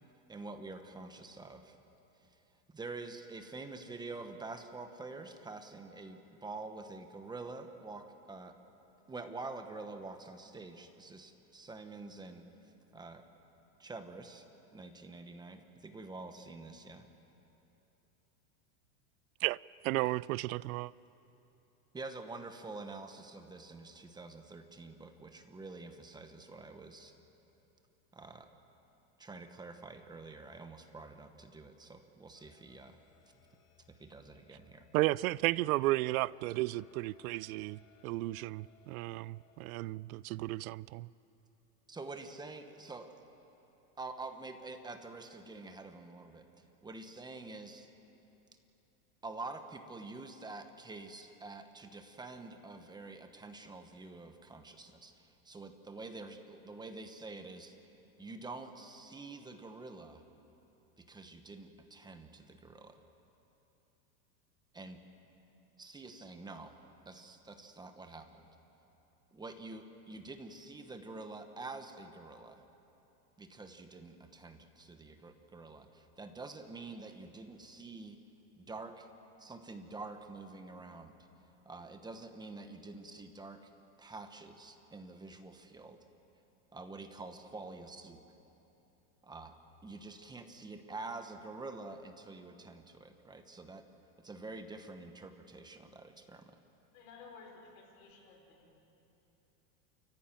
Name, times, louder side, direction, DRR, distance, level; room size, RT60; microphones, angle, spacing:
voice 1, 0.3-1.8 2.7-8.6 9.1-12.4 12.9-13.2 13.8-14.4 14.7-17.1 21.9-27.1 28.1-28.5 29.2-33.0 33.9-34.9 41.9-43.1 44.0-46.5 46.8-47.9 49.2-57.7 58.2-60.2 61.0-63.0 64.7-65.0 65.8-66.8 67.0-68.5 69.3-72.6 73.4-78.2 78.6-79.1 79.4-81.2 81.6-83.7 84.0-86.0 86.7-88.2 89.2-89.5 89.8-93.8 94.2-96.6, right 3 dB, 10° right, 1.0 m, -47 dB
voice 2, 19.8-20.9 34.9-41.1, right 19 dB, 65° right, 0.5 m, -33 dB
sound 1, 32.3-39.7, left 7 dB, 80° left, 3.1 m, -66 dB
voice 3, 96.9-98.7, left 4 dB, 60° left, 5.3 m, -54 dB
29.0 x 14.5 x 9.0 m
supercardioid pair, 150°, 46 cm